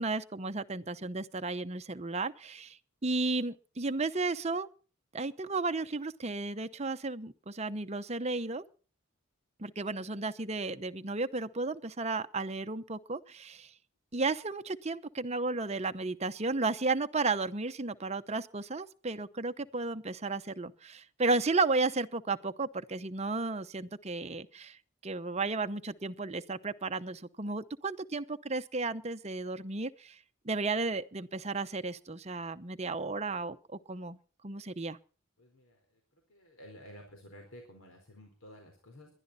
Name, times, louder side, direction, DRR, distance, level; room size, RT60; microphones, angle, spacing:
voice 1, 0.0-2.8 3.0-4.7 5.1-8.6 9.6-13.7 14.1-24.8 25.0-30.2 30.4-33.6 33.9-34.2 34.4-35.0, right 3 dB, 30° right, 0.8 m, -33 dB
voice 2, 35.4-39.1, equal, 85° left, 4.3 m, -53 dB
22.0 x 11.5 x 4.2 m
head